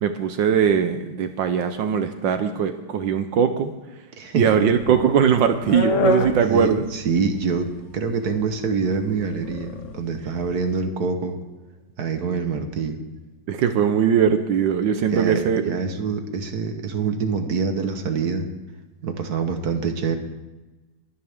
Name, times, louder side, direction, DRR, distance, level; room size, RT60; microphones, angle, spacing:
voice 1, 0.0-3.7 4.4-6.8 13.5-15.8, right 7 dB, 75° right, 8 dB, 1.5 m, -20 dB
sound 1, 4.6-10.7, left 2 dB, 50° left, 1.1 m, -28 dB
voice 2, 6.4-11.4 12.0-13.0 15.1-18.5 19.0-20.2, right 5 dB, 55° right, 6 dB, 1.6 m, -25 dB
23.0 x 9.8 x 3.6 m, 1.1 s
omnidirectional pair, 2.1 m